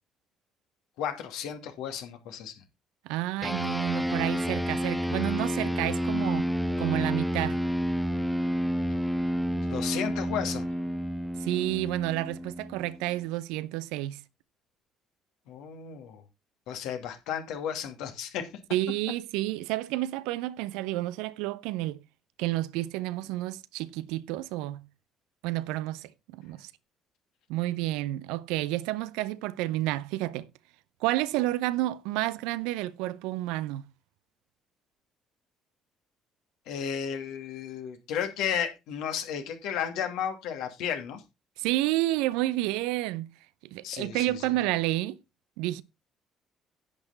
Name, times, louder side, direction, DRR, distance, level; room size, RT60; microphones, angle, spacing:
voice 1, 1.0-2.5 9.6-10.6 15.5-16.2 16.7-18.5 36.7-41.2 43.8-44.4, left 8 dB, 70° left, 2.5 m, -33 dB
voice 2, 3.0-6.5 6.8-7.6 11.4-14.2 18.7-22.0 22.4-24.8 25.4-26.7 27.5-30.5 31.0-33.9 41.6-43.3 43.6-45.2 45.6-45.8, right 16 dB, 70° right, 0.6 m, -30 dB
sound 1, 3.4-13.1, equal, ahead, 1.1 m, -30 dB
10.5 x 8.6 x 4.0 m
hypercardioid pair, 50°, 0 cm